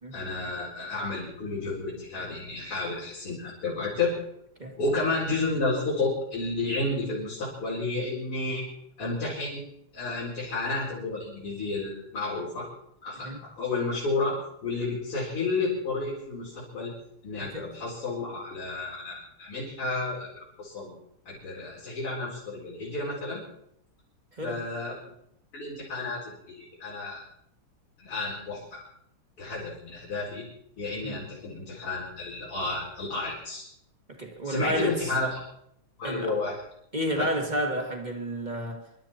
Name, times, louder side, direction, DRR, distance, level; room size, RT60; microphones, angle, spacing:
voice 1, 0.1-4.1 4.8-8.6 9.0-9.7 9.9-12.7 13.0-16.9 17.2-20.9 21.2-23.4 24.4-25.0 25.5-27.2 28.0-28.8 29.4-30.5 30.8-33.6 34.4-35.4 36.0-36.5 37.2-37.3, left 3 dB, 85° left, 5.1 m, -31 dB
voice 2, 17.4-17.7 24.3-24.7 31.0-31.2 34.1-35.1 36.0-36.4 36.9-39.1, equal, 20° right, 1.9 m, -31 dB
24.5 x 12.0 x 4.4 m
omnidirectional pair, 2.4 m